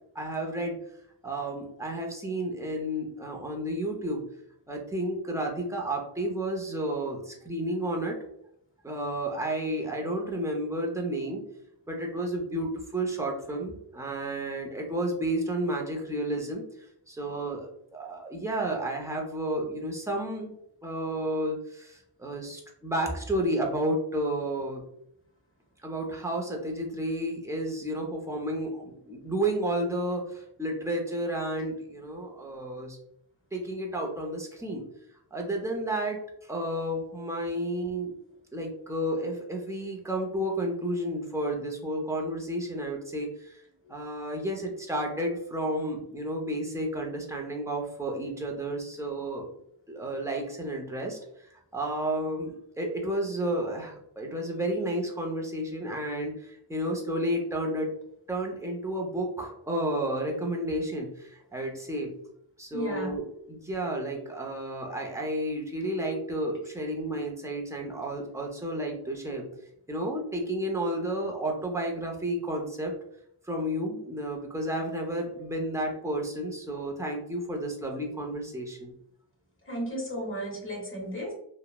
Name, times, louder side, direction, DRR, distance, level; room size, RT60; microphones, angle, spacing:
voice 1, 0.1-0.8 1.2-4.2 4.7-8.2 8.8-11.4 11.9-16.7 17.1-20.5 20.8-24.8 25.8-33.0 33.5-34.8 35.3-38.1 38.5-43.6 43.9-49.4 49.9-57.9 58.3-62.1 62.6-69.5 69.9-72.9 73.4-78.9, right 1 dB, 5° right, -1 dB, 0.5 m, -31 dB
voice 2, 62.7-63.1 79.7-81.3, equal, 25° left, -2 dB, 0.9 m, -34 dB
2.9 x 2.0 x 2.2 m, 0.73 s
wide cardioid pair, 100°, 46 cm